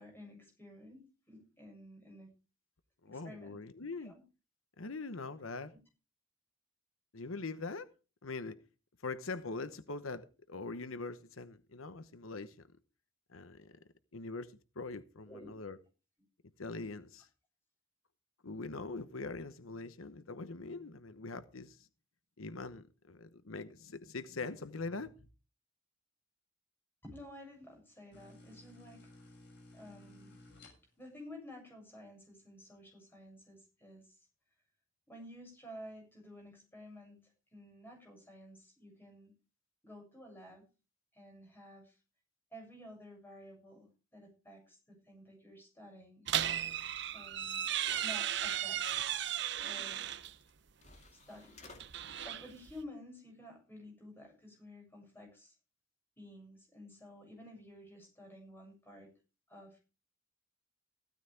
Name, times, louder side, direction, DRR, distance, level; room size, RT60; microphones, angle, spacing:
voice 1, 0.0-2.3 3.0-3.6 4.0-4.2 5.7-5.8 15.3-15.5 27.0-29.1 29.7-30.4 31.0-34.3 35.1-39.3 39.8-40.7 41.1-42.0 42.5-46.3 47.1-47.6 48.0-49.0 49.6-50.0 51.1-51.6 52.2-55.5 56.2-59.1 59.5-59.8, left 1 dB, 10° left, 7.4 m, -52 dB
voice 2, 3.0-4.1 4.8-5.7 7.1-7.9 8.2-8.6 9.0-12.6 13.3-13.7 14.1-15.8 16.6-17.3 18.4-21.9 22.4-25.1, left 3 dB, 90° left, 1.0 m, -42 dB
sound 1, 28.1-31.2, left 2 dB, 55° left, 6.7 m, -56 dB
sound 2, 46.3-50.3 51.6-52.8, right 10 dB, 55° right, 0.8 m, -35 dB
sound 3, 47.2-47.3 47.8-49.0 50.4-50.5 50.8-51.8, left 3 dB, 35° left, 2.3 m, -57 dB
15.5 x 13.5 x 3.5 m
head